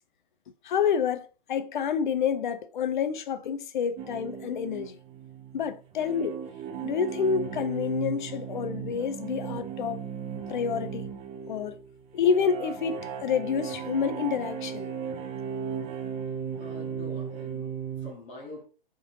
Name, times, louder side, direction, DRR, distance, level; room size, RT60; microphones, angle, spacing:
voice 1, 0.6-5.0 5.5-6.4 6.8-10.0 10.5-11.1 11.5-11.8 12.1-14.9, left 7 dB, 55° left, 0.6 m, -28 dB
sound 1, 4.0-18.1, right 7 dB, 20° right, 0.6 m, -36 dB
voice 2, 16.6-18.7, left 2 dB, 25° left, 1.4 m, -45 dB
4.3 x 3.7 x 2.7 m
figure-of-eight pair, 120°, 29 cm